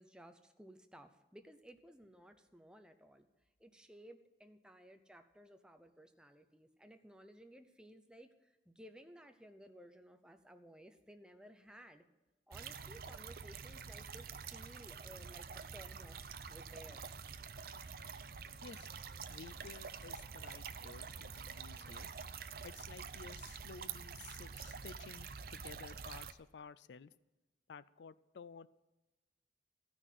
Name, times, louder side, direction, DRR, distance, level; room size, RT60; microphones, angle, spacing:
voice 1, 0.0-3.3 3.6-8.3 8.7-12.0 12.5-16.2 16.5-17.0, equal, 5° right, 7 dB, 0.8 m, -57 dB
sound 1, 12.5-26.3, right 6 dB, 55° right, 0.6 m, -47 dB
sound 2, 15.1-21.9, equal, 90° left, 3.9 m, -68 dB
voice 2, 19.3-22.1 22.6-27.1 27.7-28.7, left 5 dB, 70° left, 17 dB, 0.4 m, -54 dB
14.5 x 6.2 x 9.1 m, 1.1 s
head